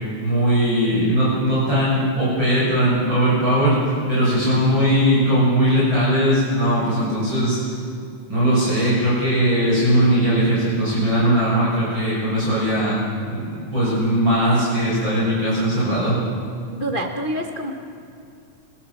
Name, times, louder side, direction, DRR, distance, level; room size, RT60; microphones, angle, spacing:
voice 1, 0.2-3.8 4.1-7.7 8.3-13.0 13.3-16.2, equal, 35° right, -8 dB, 7.1 m, -19 dB
voice 2, 16.7-17.7, right 1 dB, 50° left, 1 dB, 0.6 m, -26 dB
26.0 x 19.0 x 7.1 m, 2.4 s
omnidirectional pair, 3.6 m